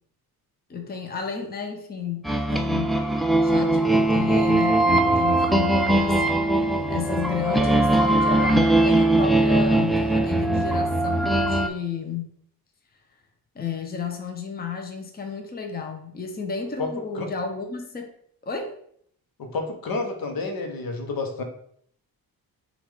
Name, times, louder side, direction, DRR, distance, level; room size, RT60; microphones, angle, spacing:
voice 1, 0.7-3.1 3.4-12.3 13.5-18.1 18.4-18.8, left 5 dB, 25° left, 3 dB, 0.7 m, -32 dB
sound 1, 2.2-11.7, right 1 dB, ahead, 0.3 m, -20 dB
voice 2, 19.4-21.4, left 3 dB, 65° left, 4 dB, 1.0 m, -29 dB
6.0 x 2.5 x 3.5 m, 0.65 s
cardioid pair, 105°, 37 cm